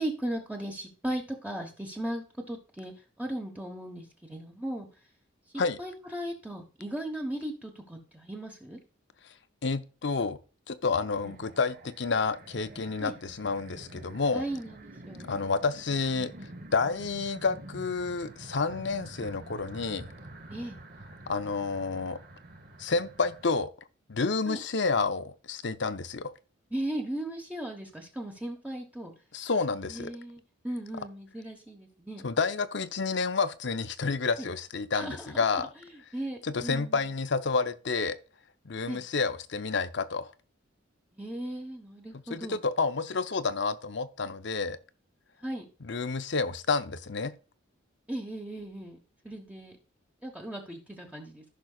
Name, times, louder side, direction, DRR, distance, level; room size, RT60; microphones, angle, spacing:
voice 1, 0.0-4.9 5.8-8.8 11.2-11.3 13.0-13.2 14.3-15.2 20.5-20.8 24.5-24.6 26.7-29.1 29.9-32.3 34.4-34.5 34.9-35.3 35.5-35.6 35.9-37.1 38.9-39.0 41.1-42.6 45.4-45.6 48.1-49.0 49.2-49.7 50.2-51.4, right 1 dB, 5° right, 1.1 m, -37 dB
voice 2, 9.6-10.4 10.7-14.4 15.2-16.3 16.7-20.1 21.3-22.2 22.8-23.7 24.1-26.3 29.3-30.1 32.2-35.7 36.4-38.2 38.6-40.3 42.3-44.8 45.8-47.3, left 4 dB, 60° left, 0.7 m, -29 dB
sound 1, 11.1-23.5, right 1 dB, 45° right, 1.1 m, -48 dB
15.0 x 6.1 x 2.4 m
head